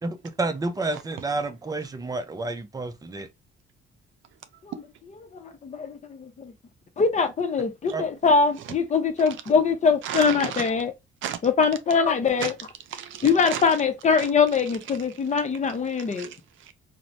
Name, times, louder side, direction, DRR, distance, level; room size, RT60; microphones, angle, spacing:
voice 1, 0.0-3.3 7.9-8.0, right 2 dB, 20° right, 0.5 m, -30 dB
voice 2, 0.9-1.3 4.7-4.8 8.6-8.8 10.0-10.7 11.2-11.4 12.4-12.5 12.9-13.8 14.2-14.3 15.1-15.2 16.0-16.7, right 10 dB, 80° right, 0.5 m, -34 dB
voice 3, 5.6-6.5 7.0-10.9 11.4-12.5 13.2-16.3, left 5 dB, 35° left, 0.6 m, -22 dB
3.0 x 2.1 x 2.6 m
cardioid pair, 90°, 20 cm